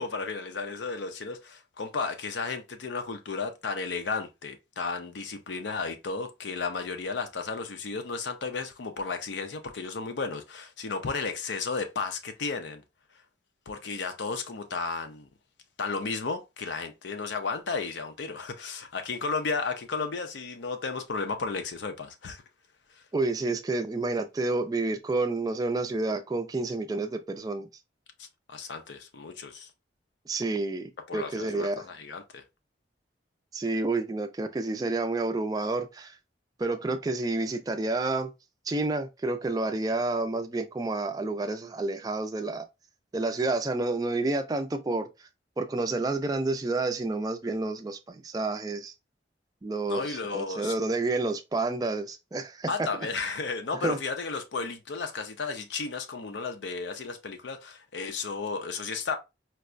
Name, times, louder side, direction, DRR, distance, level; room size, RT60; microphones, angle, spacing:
voice 1, 0.0-12.8 13.7-15.3 15.8-22.4 28.5-29.7 31.1-32.4 49.9-50.7 52.7-59.2, left 4 dB, 75° left, 0.5 m, -33 dB
voice 2, 23.1-27.7 30.3-31.8 33.5-36.2 36.6-38.3 38.7-42.7 43.1-45.1 45.6-48.9 49.6-52.9 53.8-54.0, right 2 dB, 20° right, 0.3 m, -29 dB
4.5 x 2.1 x 2.5 m
head